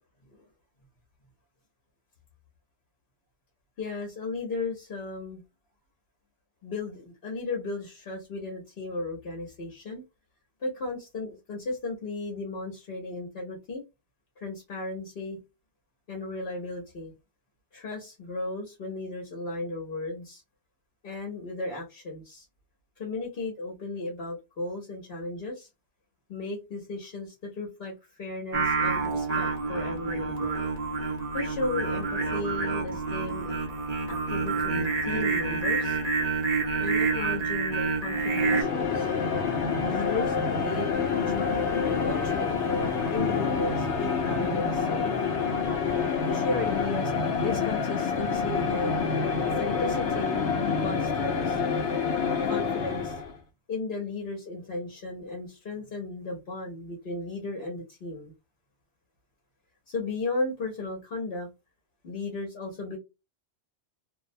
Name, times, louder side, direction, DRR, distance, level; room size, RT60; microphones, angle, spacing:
voice 1, 3.8-5.4 6.6-10.0 10.6-13.8 14.4-15.4 16.1-17.1 17.7-20.4 21.0-22.4 23.0-25.7 26.3-30.7 31.3-33.6 34.1-36.0 36.8-39.1 39.8-41.7 42.0-45.2 46.3-49.0 49.4-50.5 50.8-51.6 52.5-53.2 53.7-58.3 59.9-61.5 62.0-63.0, left 2 dB, 65° left, 0 dB, 1.0 m, -35 dB
Singing, 28.5-38.6, right 4 dB, 40° right, 0.8 m, -28 dB
sound 1, 38.1-53.4, left 5 dB, 90° left, 0.9 m, -27 dB
2.5 x 2.0 x 2.5 m, 0.25 s
omnidirectional pair, 1.1 m